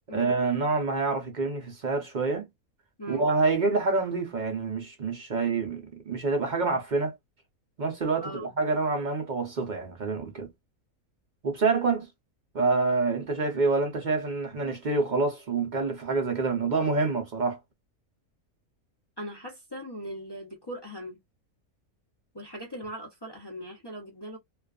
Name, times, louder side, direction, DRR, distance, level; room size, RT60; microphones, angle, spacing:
voice 1, 0.1-2.5 3.1-7.2 7.8-10.5 11.4-12.1 12.5-17.6, right 3 dB, 50° right, 0.6 m, -27 dB
voice 2, 8.2-8.5 19.2-21.2 22.3-24.4, equal, 30° left, 0.5 m, -39 dB
2.4 x 2.3 x 2.3 m
omnidirectional pair, 1.5 m